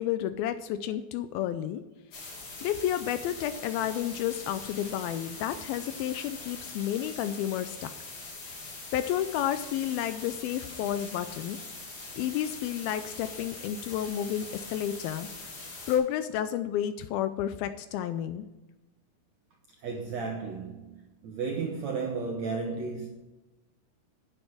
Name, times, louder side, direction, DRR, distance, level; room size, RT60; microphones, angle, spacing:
voice 1, 0.0-1.8 2.6-7.9 8.9-11.6 12.1-15.3 15.9-18.5, left 11 dB, 85° left, 2.2 m, -31 dB
sound 1, 2.1-16.0, left 3 dB, 50° left, 3.9 m, -43 dB
voice 2, 19.8-23.1, right 4 dB, 85° right, 1.5 m, -34 dB
9.7 x 8.0 x 6.2 m
omnidirectional pair, 4.7 m